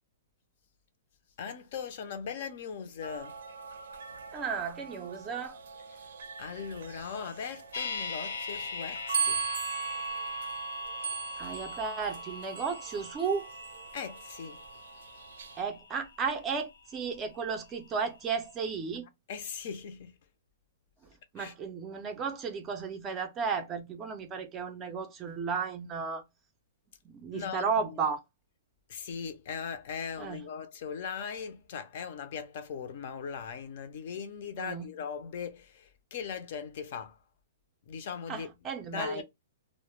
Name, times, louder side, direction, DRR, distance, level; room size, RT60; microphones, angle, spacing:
voice 1, 1.4-3.4 6.4-9.4 13.9-14.6 19.3-20.1 21.4-21.5 27.3-28.0 28.9-37.2 37.9-38.5 38.9-39.2, left 6 dB, 45° left, 0.4 m, -39 dB
sound 1, 3.0-15.6, right 7 dB, 75° right, 0.5 m, -39 dB
voice 2, 4.3-5.6 11.4-13.5 15.6-19.1 21.3-26.2 27.0-28.2 30.2-30.4 34.6-34.9 38.3-39.2, right 5 dB, 15° right, 0.4 m, -34 dB
sound 2, 7.7-17.8 18.1-18.2, left 5 dB, 85° left, 0.6 m, -42 dB
2.1 x 2.0 x 2.9 m
hypercardioid pair, 170°, 0 cm